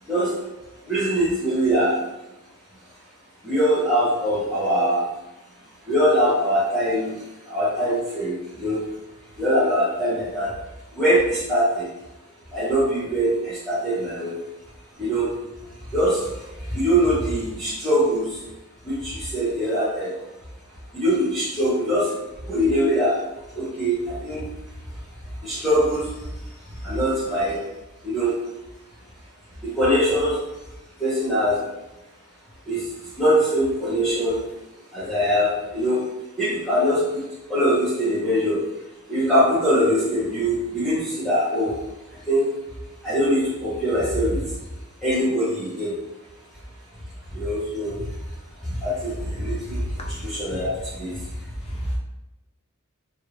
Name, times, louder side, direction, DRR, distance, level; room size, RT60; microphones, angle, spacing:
voice 1, 0.9-2.0 3.4-5.1 5.9-7.1 7.5-8.8 9.4-10.5 11.0-11.9 12.5-14.3 15.0-15.3 15.9-16.2 16.7-18.3 19.0-20.1 20.9-22.1 22.5-23.1 23.5-24.4 25.4-26.0 26.8-27.6 28.0-28.3 29.6-30.3 31.0-31.5 32.7-32.8 33.2-34.4 34.9-36.0 36.4-37.2 37.5-38.6 39.1-41.7 42.3-42.4 43.0-44.4 45.0-45.9 47.3-47.9 48.8-49.8 50.3-51.1, equal, ahead, -12 dB, 0.9 m, -22 dB
voice 2, 50.0-50.4 51.6-51.9, left 2 dB, 25° left, 2 dB, 0.4 m, -43 dB
3.2 x 2.5 x 3.1 m, 0.97 s
head